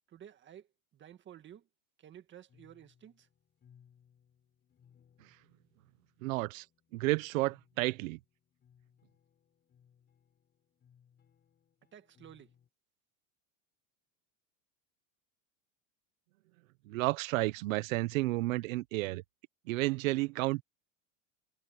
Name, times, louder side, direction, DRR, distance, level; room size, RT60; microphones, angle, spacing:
voice 1, 0.1-1.7 2.0-3.3 11.9-12.5, right 10 dB, 25° right, 1.8 m, -53 dB
sound 1, 2.5-12.7, left 8 dB, 25° left, 5.5 m, -67 dB
voice 2, 6.2-6.7 6.9-8.2 16.8-19.2 19.6-20.6, right 21 dB, 70° right, 1.2 m, -31 dB
supercardioid pair, 145°, 41 cm